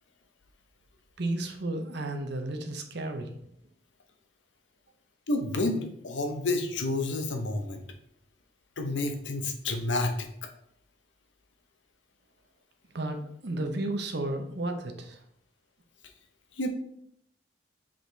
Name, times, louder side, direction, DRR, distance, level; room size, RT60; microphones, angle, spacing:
voice 1, 1.2-3.3 12.9-15.2, right 2 dB, 65° right, 6 dB, 0.9 m, -33 dB
voice 2, 5.3-7.8 8.8-10.5 16.6-16.7, left 2 dB, 80° left, 6 dB, 0.9 m, -30 dB
6.1 x 5.0 x 3.4 m, 0.72 s
head